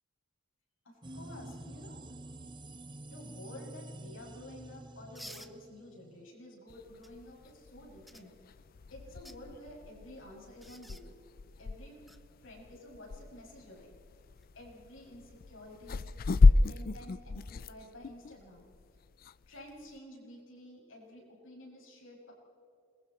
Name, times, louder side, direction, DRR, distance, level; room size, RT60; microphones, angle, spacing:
voice 1, 0.8-2.2 3.1-8.6 8.9-11.1 11.6-12.1 12.4-13.9 14.5-16.1 16.4-18.7 19.5-22.3, left 1 dB, 85° left, -2 dB, 6.9 m, -51 dB
sound 1, 1.0-6.3, right 1 dB, 25° right, 0.8 m, -48 dB
sound 2, 5.1-5.5 7.0-7.1 8.1-8.2 9.1-9.4 10.6-11.0 12.1-12.2 14.2-14.4, equal, ahead, 0.9 m, -50 dB
sound 3, 6.7-20.0, left 3 dB, 50° left, 0.4 m, -32 dB
27.5 x 22.5 x 4.4 m, 2.5 s
head